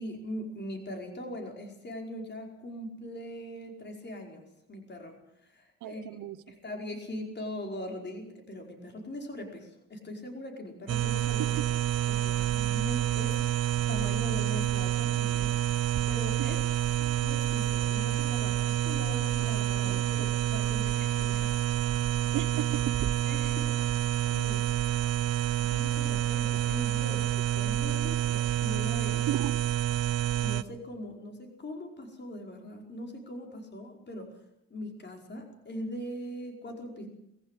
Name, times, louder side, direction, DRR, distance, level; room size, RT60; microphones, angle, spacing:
voice 1, 0.0-6.0 6.5-11.5 12.1-13.6 13.9-15.5 16.1-16.6 17.0-21.5 23.2-24.0 24.3-24.6 25.6-29.3 30.4-34.3 34.7-37.1, left 1 dB, 35° left, 3 dB, 5.0 m, -41 dB
voice 2, 5.8-6.5 11.4-11.7 16.4-16.6 19.4-20.3 22.3-23.2 29.3-29.6, right 12 dB, 80° right, 12 dB, 1.0 m, -36 dB
sound 1, 10.9-30.6, right 12 dB, 55° right, 0.8 m, -28 dB
22.0 x 15.5 x 8.3 m, 0.79 s
cardioid pair, 90°, 30 cm